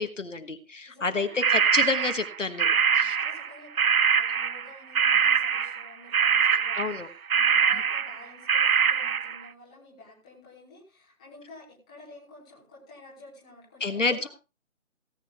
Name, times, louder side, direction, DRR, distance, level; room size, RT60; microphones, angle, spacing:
voice 1, 0.0-3.2 6.7-7.1 7.7-7.8 13.8-14.3, left 3 dB, 60° left, 9 dB, 1.4 m, -29 dB
voice 2, 0.8-1.7 2.7-14.3, left 2 dB, 5° left, -8 dB, 1.3 m, -50 dB
sound 1, 1.4-3.5 3.8-9.4, right 7 dB, 75° right, 0.7 m, -23 dB
17.5 x 8.6 x 3.4 m, 0.30 s
figure-of-eight pair, 160°, 42 cm